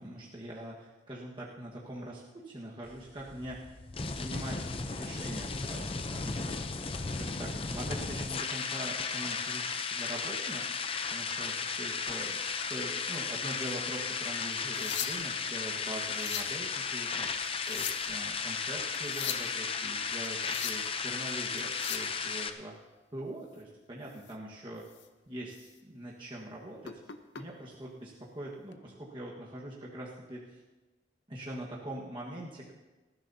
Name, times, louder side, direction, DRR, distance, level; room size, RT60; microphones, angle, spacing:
voice 1, 0.0-3.8 4.1-6.6 6.9-10.7 11.1-22.8 23.1-24.8 25.3-27.0 27.4-30.6 31.3-32.7, right 1 dB, 25° right, -5 dB, 1.5 m, -43 dB
sound 1, 2.8-22.5, left 5 dB, 30° left, 0.6 m, -35 dB
sound 2, 14.5-15.4 16.0-16.6 17.4-18.2 18.9-19.5 20.2-20.9 21.6-22.1 24.2-24.3 24.8-25.1 25.5-25.7 26.8-27.4 28.5-28.7, left 9 dB, 70° left, 0.8 m, -39 dB
19.5 x 14.5 x 2.8 m, 1.2 s
head